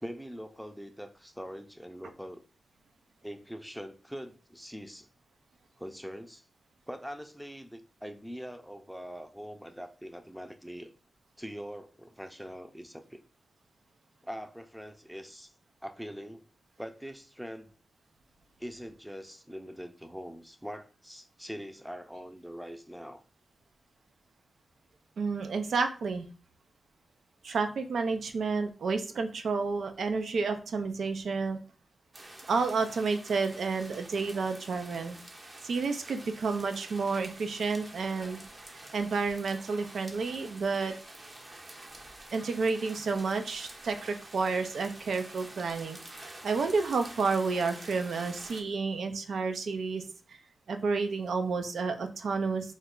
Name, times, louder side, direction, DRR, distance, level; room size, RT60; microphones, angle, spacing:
voice 1, 0.0-2.4 3.2-5.1 5.8-6.4 6.9-10.9 11.4-13.2 14.2-15.5 15.8-16.5 16.8-17.7 18.6-23.2, equal, 5° right, 7 dB, 0.5 m, -43 dB
voice 2, 25.2-26.3 27.4-31.6 32.5-35.2 35.6-38.4 38.9-40.9 42.3-50.0 50.3-50.4 50.7-52.7, right 4 dB, 85° right, 7 dB, 0.4 m, -30 dB
sound 1, 32.1-48.6, right 2 dB, 40° right, 0.6 m, -48 dB
3.1 x 2.2 x 3.7 m, 0.37 s
cardioid pair, 70°, 0 cm